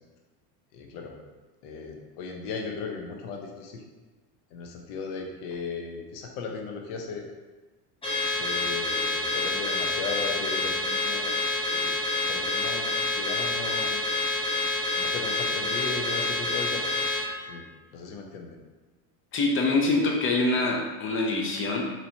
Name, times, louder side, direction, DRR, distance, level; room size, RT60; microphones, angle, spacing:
voice 1, 0.7-1.2 1.6-3.8 4.5-7.3 8.2-11.9 12.3-14.0 14.9-16.9 17.5-17.6 17.9-18.6, left 4 dB, 65° left, 1 dB, 0.9 m, -37 dB
Car / Alarm, 8.0-17.3, left 2 dB, 10° left, 0.9 m, -28 dB
voice 2, 19.3-21.8, left 2 dB, 25° left, 0 dB, 0.5 m, -25 dB
4.2 x 3.0 x 2.8 m, 1.2 s
supercardioid pair, 120°, 49 cm